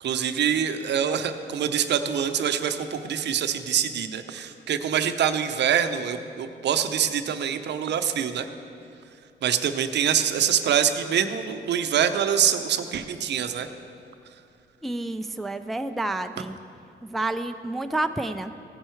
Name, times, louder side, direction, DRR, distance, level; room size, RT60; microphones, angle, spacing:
voice 1, 0.0-8.5 9.4-13.7, right 8 dB, 60° right, 9 dB, 0.6 m, -25 dB
voice 2, 14.8-16.6 17.0-18.5, right 2 dB, ahead, 8 dB, 0.3 m, -29 dB
15.5 x 5.5 x 4.5 m, 2.5 s
cardioid pair, 90°, 20 cm